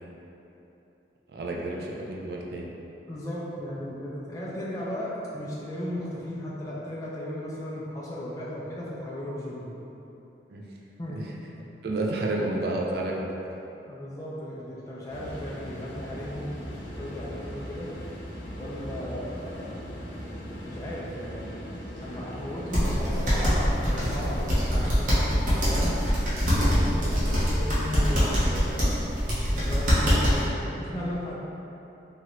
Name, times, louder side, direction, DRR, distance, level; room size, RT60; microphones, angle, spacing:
voice 1, 1.3-2.7 10.5-10.6 11.1-11.2 11.8-13.3, right 2 dB, 60° right, -1 dB, 0.4 m, -30 dB
voice 2, 3.1-9.7 11.0-11.2 13.9-17.9 18.6-19.7 20.6-21.5 22.0-25.9 26.5-28.8 29.5-31.4, left 1 dB, 20° left, -7 dB, 0.3 m, -36 dB
sound 1, 15.1-24.7, equal, 85° left, 0.5 m, -39 dB
sound 2, 22.7-30.5, equal, 45° right, 0.8 m, -24 dB
3.1 x 2.4 x 2.9 m, 3.0 s
head